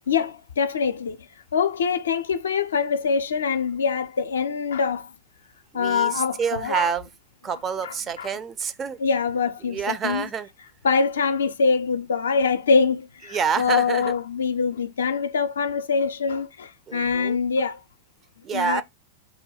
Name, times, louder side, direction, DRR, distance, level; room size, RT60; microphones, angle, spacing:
voice 1, 0.1-1.3 1.5-5.1 5.7-6.9 7.8-8.3 9.0-10.3 10.8-17.8 18.5-18.8, left 5 dB, 70° left, 0.4 m, -24 dB
voice 2, 5.7-7.1 7.4-9.0 9.6-10.5 13.3-14.1 16.9-17.4 18.4-18.8, right 7 dB, 25° right, 0.5 m, -27 dB
4.0 x 2.2 x 4.0 m
figure-of-eight pair, 90°, 0 cm